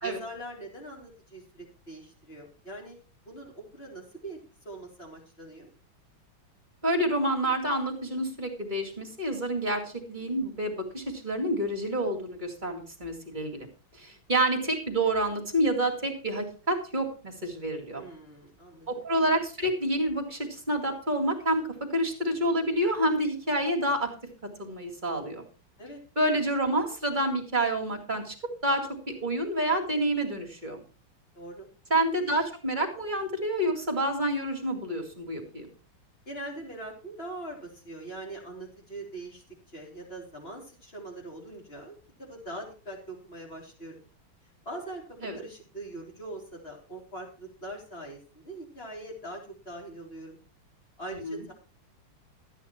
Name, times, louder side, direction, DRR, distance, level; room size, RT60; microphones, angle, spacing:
voice 1, 0.0-3.0 3.3-4.4 4.6-5.7 17.9-18.9 25.8-26.0 31.3-31.7 36.3-44.0 44.7-45.0 45.3-50.4 51.0-51.5, right 1 dB, 30° left, -1 dB, 3.8 m, -42 dB
voice 2, 6.8-13.7 13.9-18.0 18.9-24.1 24.6-25.5 26.2-28.3 28.6-30.8 31.9-35.7 45.2-45.4 51.1-51.4, right 1 dB, 25° right, 2 dB, 2.3 m, -28 dB
13.0 x 9.0 x 4.4 m, 0.36 s
omnidirectional pair, 2.2 m